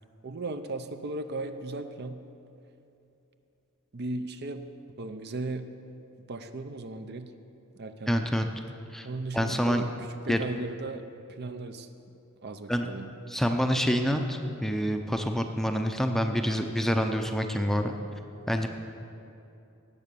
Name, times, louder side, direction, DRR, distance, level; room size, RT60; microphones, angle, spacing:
voice 1, 0.2-2.2 3.9-4.6 5.0-5.7 6.3-7.3 7.8-8.3 9.0-9.9 10.2-11.9 12.4-13.1, right 2 dB, 50° right, 8 dB, 0.6 m, -36 dB
voice 2, 8.1-8.5 8.9-9.1 9.3-9.8 10.3-10.4 12.7-12.9 13.3-17.9 18.5-18.7, equal, ahead, 5 dB, 0.6 m, -27 dB
18.0 x 7.0 x 6.9 m, 2.8 s
head